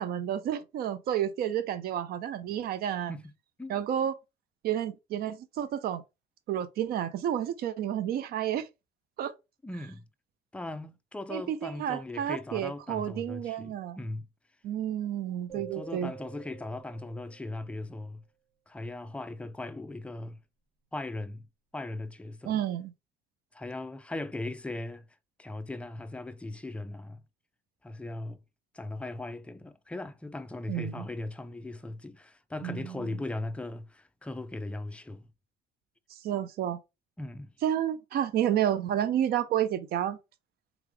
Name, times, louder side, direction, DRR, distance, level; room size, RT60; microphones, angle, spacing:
voice 1, 0.0-3.1 3.7-4.1 4.6-6.0 6.5-8.7 9.2-9.3 11.3-14.0 14.6-16.1 22.4-22.9 30.7-31.1 32.6-33.2 36.2-36.8 37.6-40.2, right 10 dB, 65° right, 0.6 m, -30 dB
voice 2, 9.6-10.0 10.5-14.3 15.5-18.2 18.7-20.4 20.9-21.5 21.7-22.6 23.5-25.1 25.4-27.2 27.8-28.4 28.7-35.2 37.2-37.5, left 2 dB, 5° left, 0.4 m, -38 dB
sound 1, 15.5-17.8, right 11 dB, 35° right, 1.4 m, -48 dB
3.6 x 3.4 x 3.4 m
cardioid pair, 110°, 17 cm